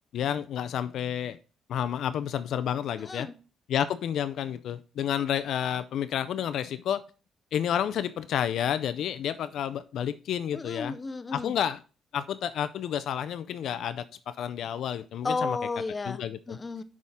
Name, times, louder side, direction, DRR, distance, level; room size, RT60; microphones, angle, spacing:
voice 1, 0.1-1.4 1.7-3.3 3.7-7.0 7.5-11.0 11.3-11.8 12.1-15.6 16.0-16.6, left 9 dB, 75° left, 0.4 m, -30 dB
voice 2, 3.0-3.3 10.5-11.6 15.2-16.2 16.5-16.8, left 4 dB, 30° left, 0.6 m, -33 dB
6.3 x 3.7 x 5.4 m
cardioid pair, 90°, 0 cm